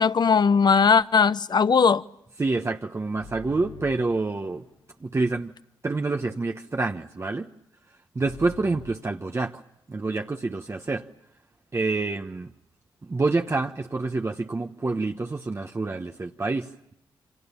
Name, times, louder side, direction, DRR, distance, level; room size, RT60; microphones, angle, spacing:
voice 1, 0.0-2.0, left 5 dB, 50° left, 0.9 m, -19 dB
voice 2, 2.4-4.6 5.0-5.5 5.8-7.5 8.1-9.6 9.9-11.1 11.7-12.5 13.0-16.9, right 3 dB, 30° right, 1.1 m, -27 dB
sound 1, 3.2-4.9 8.2-9.1, left 4 dB, 85° left, 3.2 m, -45 dB
29.0 x 25.0 x 7.1 m
cardioid pair, 60°, 9 cm